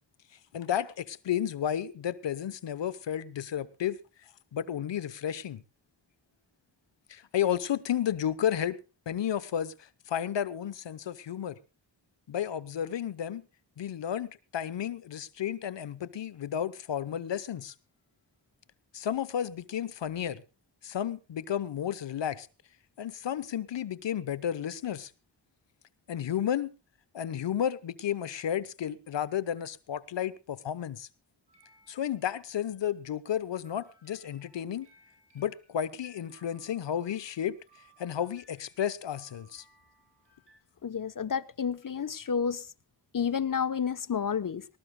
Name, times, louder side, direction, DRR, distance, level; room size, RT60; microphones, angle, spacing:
voice 1, 0.5-4.0 4.5-5.6 7.1-8.8 9.1-11.6 12.3-13.4 13.8-17.7 18.9-20.4 20.8-22.5 23.0-25.1 26.1-26.7 27.1-31.1 31.9-34.9 35.3-37.6 38.0-39.6, left 10 dB, 90° left, 0.9 m, -32 dB
sound 1, 31.5-33.1 33.6-40.6, right 3 dB, 75° right, 6.5 m, -64 dB
voice 2, 40.8-42.7 43.1-44.7, left 7 dB, 50° left, 0.9 m, -30 dB
19.0 x 19.0 x 2.2 m
cardioid pair, 50°, 42 cm